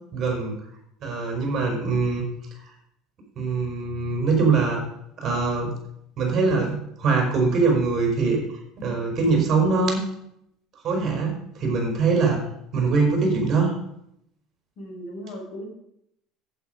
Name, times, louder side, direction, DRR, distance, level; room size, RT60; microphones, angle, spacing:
voice 1, 0.1-0.6 1.0-2.2 3.4-4.8 5.2-5.7 6.2-8.4 8.8-10.0 10.8-12.4 12.7-13.8, right 4 dB, 35° right, 1 dB, 4.8 m, -22 dB
voice 2, 14.8-15.6, equal, 50° left, 0 dB, 5.6 m, -37 dB
11.5 x 9.1 x 5.3 m, 0.76 s
supercardioid pair, 120°, 0 cm